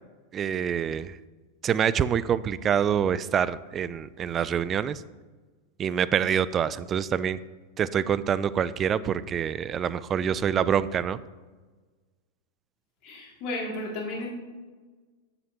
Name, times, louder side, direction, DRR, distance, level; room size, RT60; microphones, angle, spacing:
voice 1, 0.3-1.2 1.6-5.0 5.8-7.4 7.8-11.2, right 8 dB, 30° right, 17 dB, 0.3 m, -26 dB
voice 2, 13.0-14.3, left 2 dB, 50° left, -1 dB, 2.3 m, -33 dB
7.8 x 7.5 x 2.9 m, 1.3 s
hypercardioid pair, 100°, 0 cm